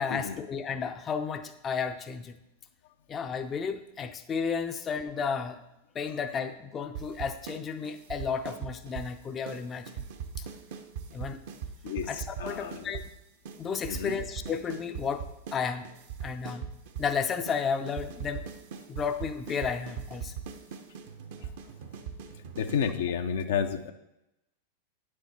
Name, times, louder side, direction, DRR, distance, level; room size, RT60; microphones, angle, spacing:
voice 1, 0.0-2.4 3.1-5.6 5.9-10.0 10.4-10.5 11.1-11.4 12.1-13.0 13.6-15.9 16.2-16.7 17.0-18.5 18.9-20.3, left 6 dB, 25° left, 8 dB, 0.5 m, -33 dB
sound 1, 6.9-7.6 7.8-9.1 9.5-9.6 9.9-13.1 13.5-13.6 13.8-15.6 15.8-17.1 17.5-17.6 17.9-22.9, right 7 dB, 60° right, 0.8 m, -39 dB
voice 2, 11.8-12.9 13.9-14.2 22.6-23.9, left 7 dB, 65° left, 7 dB, 0.6 m, -31 dB
9.3 x 6.6 x 4.2 m, 0.90 s
figure-of-eight pair, 90°, 0 cm